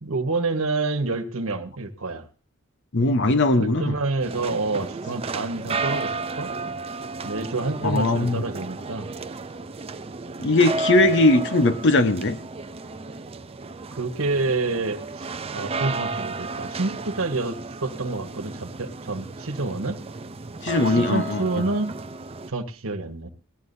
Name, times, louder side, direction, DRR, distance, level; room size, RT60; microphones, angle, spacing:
voice 1, 0.0-2.3 3.5-6.5 7.2-9.1 13.9-20.0 20.8-21.9 22.5-23.3, right 3 dB, 75° right, 1.3 m, -28 dB
voice 2, 2.9-3.9 7.8-8.4 10.4-12.4 20.6-21.4, left 2 dB, 55° left, 1.0 m, -20 dB
sound 1, 4.2-22.5, right 3 dB, 30° right, 0.5 m, -33 dB
18.5 x 13.0 x 2.7 m
head